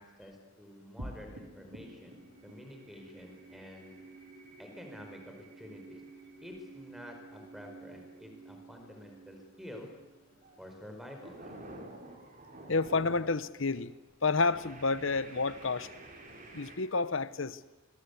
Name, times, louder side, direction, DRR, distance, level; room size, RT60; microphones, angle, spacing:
voice 1, 0.0-4.0 4.6-6.0 6.4-9.9 10.6-11.6, left 1 dB, ahead, 3 dB, 5.0 m, -49 dB
sound 1, 1.0-11.6, right 2 dB, 55° right, 4.2 m, -51 dB
sound 2, 10.3-10.6 11.0-13.4 13.7-14.0 14.4-16.8, right 2 dB, 40° right, 4.4 m, -49 dB
voice 2, 12.7-13.9 14.2-15.9 16.5-17.6, left 3 dB, 70° left, 16 dB, 1.0 m, -30 dB
26.0 x 22.0 x 8.4 m, 1.1 s
head